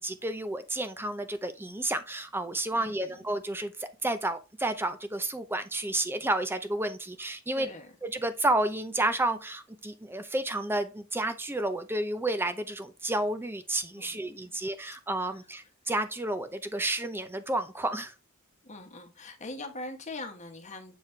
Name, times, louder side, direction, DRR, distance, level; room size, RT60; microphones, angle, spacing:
voice 1, 0.0-7.7 8.0-18.1, right 1 dB, 10° right, 0.6 m, -31 dB
voice 2, 2.7-3.2 7.5-7.9 14.0-14.6 15.2-15.4 18.6-21.0, left 2 dB, 35° left, 1.2 m, -42 dB
7.4 x 4.2 x 3.3 m
head